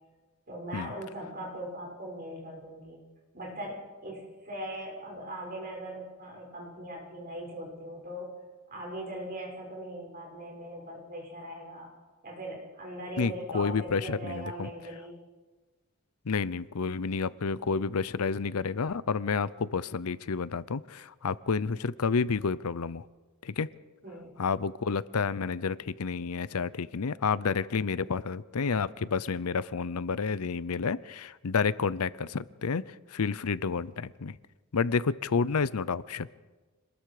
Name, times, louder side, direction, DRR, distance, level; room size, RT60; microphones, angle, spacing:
voice 1, 0.5-3.0 3.3-8.4 8.7-11.9 12.2-15.2 24.0-24.4, right 1 dB, 40° right, -1 dB, 6.1 m, -40 dB
voice 2, 13.2-14.7 16.3-23.0 23.4-23.7 24.4-32.8 33.1-34.4 34.7-36.3, left 5 dB, 80° left, 18 dB, 0.6 m, -30 dB
26.0 x 20.0 x 4.9 m, 1.3 s
head